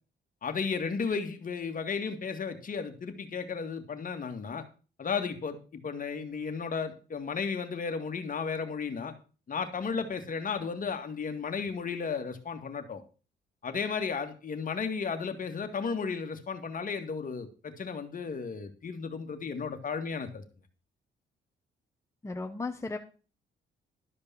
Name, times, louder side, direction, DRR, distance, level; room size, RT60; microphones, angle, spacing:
voice 1, 0.4-4.6 5.0-9.1 9.5-13.0 13.6-20.4, left 5 dB, 45° left, 6 dB, 2.1 m, -34 dB
voice 2, 22.2-23.0, left 3 dB, 15° left, 4 dB, 1.1 m, -35 dB
12.5 x 5.3 x 7.1 m, 0.36 s
cardioid pair, 90°, 20 cm